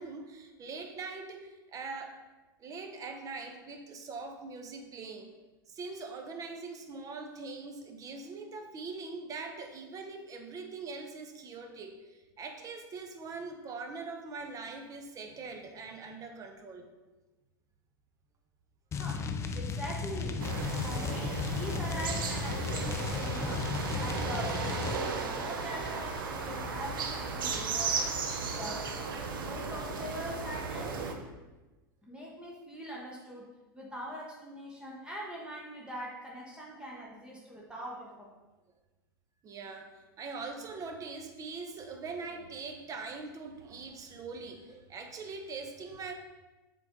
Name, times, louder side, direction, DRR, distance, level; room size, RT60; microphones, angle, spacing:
voice 1, 0.0-2.2 2.6-5.3 5.7-16.9 39.4-46.1, right 4 dB, 30° right, 4 dB, 1.0 m, -42 dB
sound 1, 18.9-25.0, left 5 dB, 25° left, 0.5 m, -35 dB
voice 2, 19.0-28.0 28.4-28.9 29.4-31.0 32.0-38.3, equal, 10° right, -4 dB, 1.1 m, -43 dB
sound 2, 20.4-31.1, right 4 dB, 70° right, 0.8 m, -35 dB
7.3 x 3.9 x 3.8 m, 1.1 s
hypercardioid pair, 95°, 12 cm